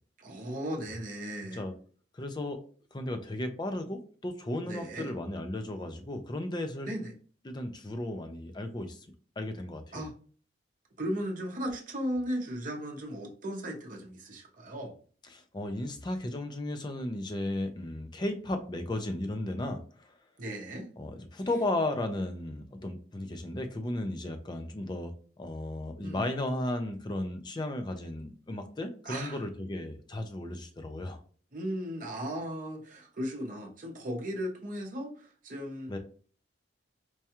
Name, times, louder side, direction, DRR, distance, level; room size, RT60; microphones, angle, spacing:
voice 1, 0.2-1.6 4.6-5.1 6.8-7.1 9.9-10.1 11.0-14.9 20.4-20.9 26.0-26.3 29.1-29.4 31.5-36.0, equal, 45° right, 0.7 m, -36 dB
voice 2, 1.4-1.7 2.1-2.6 2.9-6.9 7.4-9.1 9.4-10.1 15.3-20.2 21.0-31.2 35.9-36.0, left 1 dB, 25° left, 0.4 m, -35 dB
4.6 x 2.3 x 2.8 m
head